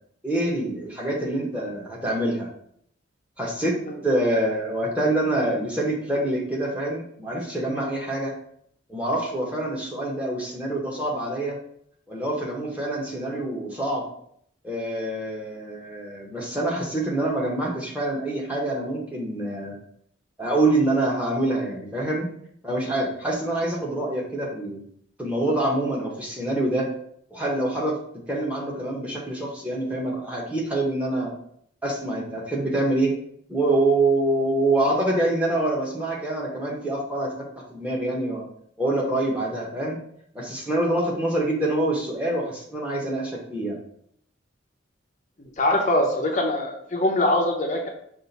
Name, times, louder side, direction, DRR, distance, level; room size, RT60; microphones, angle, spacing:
voice 1, 0.2-2.5 3.4-8.3 8.9-11.6 12.1-14.0 14.6-19.7 20.4-22.3 22.6-24.8 25.2-26.9 27.3-28.0 28.3-31.3 31.8-33.1 33.5-38.4 38.8-40.0 40.3-43.8, right 1 dB, 5° right, -3 dB, 0.8 m, -26 dB
voice 2, 45.6-47.9, left 1 dB, 35° left, 1 dB, 0.5 m, -23 dB
5.5 x 2.5 x 3.9 m, 0.68 s
head